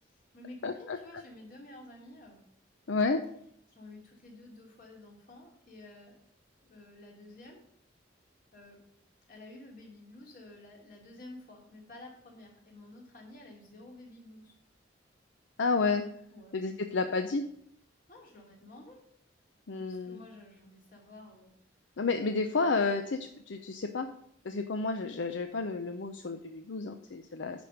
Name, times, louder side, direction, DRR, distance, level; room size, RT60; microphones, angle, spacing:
voice 1, 0.1-2.4 3.7-6.1 6.7-7.6 8.5-8.8 9.3-14.5 16.3-16.5 18.1-19.0 19.7-21.5, left 2 dB, 45° left, -1 dB, 3.0 m, -51 dB
voice 2, 0.6-1.0 2.9-3.2 15.6-16.0 16.5-17.4 19.7-20.2 22.0-24.1 24.4-27.6, left 4 dB, 75° left, 7 dB, 0.6 m, -31 dB
10.5 x 5.2 x 6.5 m, 0.69 s
head